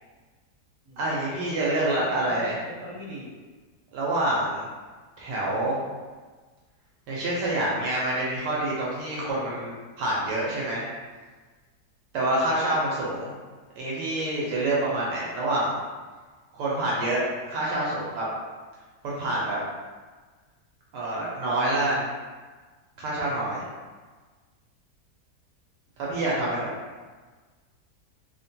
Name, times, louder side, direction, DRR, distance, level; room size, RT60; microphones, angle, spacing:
voice 1, 1.0-2.5 3.9-4.7 5.2-5.8 7.1-10.8 12.1-13.3 13.8-15.8 16.5-18.3 19.0-19.6 20.9-22.1 23.0-23.6 26.0-26.7, right 1 dB, 85° right, -5 dB, 1.2 m, -27 dB
voice 2, 1.7-3.3, equal, 50° right, -8 dB, 1.3 m, -41 dB
3.1 x 2.1 x 2.7 m, 1.4 s
omnidirectional pair, 1.8 m